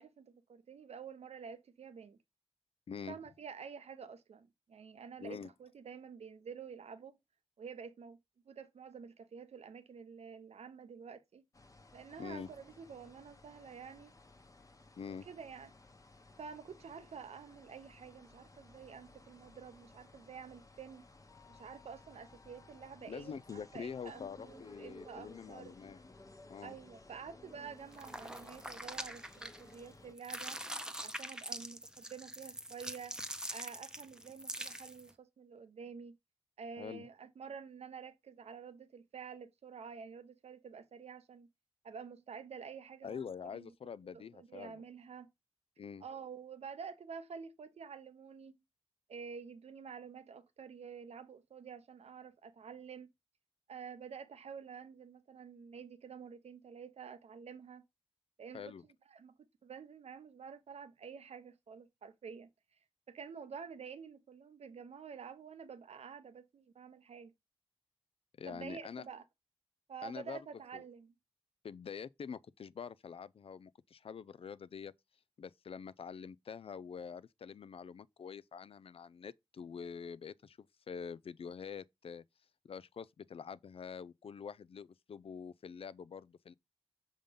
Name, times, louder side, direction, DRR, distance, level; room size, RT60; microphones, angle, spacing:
voice 1, 0.0-2.2 3.1-7.2 7.6-8.2 8.4-11.4 11.9-14.1 15.1-15.7 16.4-21.1 21.5-25.7 26.6-30.6 31.0-33.2 33.5-36.2 36.6-41.5 41.8-43.7 44.1-45.3 46.0-48.6 49.1-53.1 53.7-57.9 58.4-58.7 59.1-59.4 59.6-62.5 63.1-67.3 68.5-69.2 69.9-71.1, right 6 dB, 85° right, 0.7 m, -49 dB
voice 2, 2.9-3.2 5.2-5.5 12.2-12.5 15.0-15.3 23.0-26.0 26.5-26.8 36.8-37.1 43.0-44.8 45.8-46.0 58.5-58.8 68.4-69.0 70.0-70.4 70.7-70.8 71.6-74.9 75.4-82.2 82.6-86.5, left 6 dB, 65° left, 0.4 m, -46 dB
sound 1, 11.5-30.1, left 2 dB, 30° left, 1.0 m, -58 dB
sound 2, 27.9-29.9 30.2-35.1, right 1 dB, 5° right, 0.8 m, -44 dB
5.5 x 3.7 x 5.2 m
cardioid pair, 45°, 11 cm